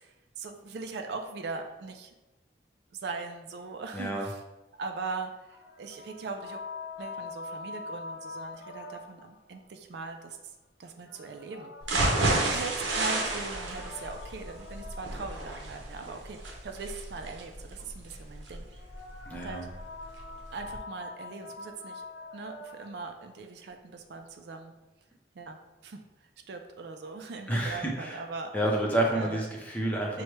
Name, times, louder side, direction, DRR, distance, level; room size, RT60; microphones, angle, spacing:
voice 1, 0.0-2.1 2.9-4.4 4.8-6.6 7.0-10.4 10.8-11.7 12.2-18.6 19.4-19.6 20.5-22.0 22.3-24.7 25.3-26.0 26.5-28.5 29.1-29.5 30.1-30.2, right 4 dB, 65° right, 5 dB, 0.4 m, -40 dB
voice 2, 3.9-4.3 12.2-12.5 19.3-19.7 27.5-28.2 28.5-30.2, right 1 dB, 10° left, -2 dB, 0.6 m, -29 dB
sound 1, 5.5-9.4 11.0-15.5 18.7-23.1, left 3 dB, 75° left, 0.5 m, -44 dB
sound 2, 11.8-19.8 20.2-20.3 20.7-20.8, right 2 dB, 85° right, 0.7 m, -31 dB
6.2 x 2.1 x 3.1 m, 1.0 s
head